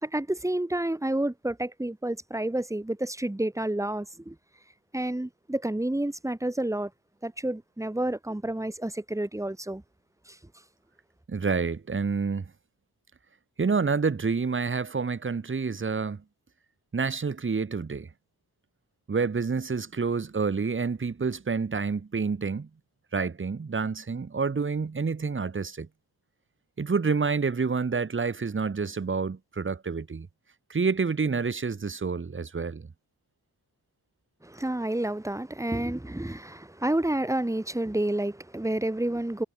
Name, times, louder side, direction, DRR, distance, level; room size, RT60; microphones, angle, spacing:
voice 1, 0.0-4.4 4.9-6.9 7.2-9.8 10.3-10.4 34.4-39.4, right 1 dB, 10° right, 2.1 m, -29 dB
voice 2, 11.3-12.4 13.6-16.2 16.9-18.1 19.1-22.7 23.1-25.9 26.8-30.3 30.7-32.9, right 5 dB, 30° right, 1.7 m, -28 dB
wide cardioid pair, 145°, 39 cm